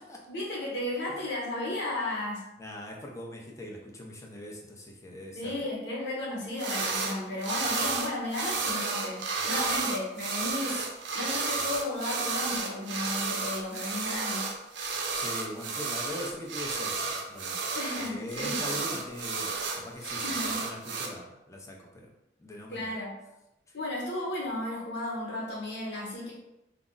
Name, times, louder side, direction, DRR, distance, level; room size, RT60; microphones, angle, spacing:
voice 1, 0.3-2.4 5.3-14.5 17.7-19.0 20.2-20.7 22.7-23.1 23.7-26.3, left 1 dB, 70° left, -4 dB, 0.9 m, -34 dB
voice 2, 2.6-5.6 15.1-17.6 18.0-22.1 22.4-22.9 23.7-23.8, left 1 dB, 15° left, -1 dB, 0.5 m, -41 dB
sound 1, 6.6-7.2 7.4-21.1, right 4 dB, 75° right, 0.4 m, -32 dB
2.4 x 2.0 x 3.7 m, 0.93 s
head